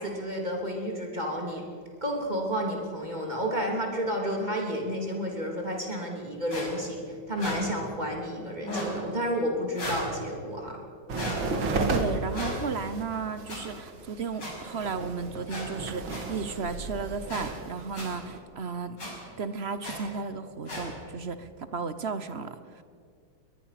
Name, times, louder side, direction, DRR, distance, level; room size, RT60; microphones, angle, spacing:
voice 1, 0.0-1.6 2.0-10.8, equal, 20° right, 1 dB, 3.0 m, -31 dB
sound 1, 6.5-6.7 7.4-7.6 8.6-8.9 9.7-10.0 11.1-11.4 12.3-12.6 13.5-13.6 14.4-14.5 15.5-15.7 16.1-16.2 17.3-17.4 17.9-18.1 19.0-19.1 19.8-20.0 20.7-20.8, left 1 dB, 65° left, 6.4 m, -34 dB
sound 2, 11.1-18.4, right 3 dB, 85° right, 2.7 m, -33 dB
voice 2, 11.9-19.0 19.4-22.8, right 5 dB, 45° right, 12 dB, 0.9 m, -34 dB
22.0 x 20.5 x 5.9 m, 2.2 s
omnidirectional pair, 2.1 m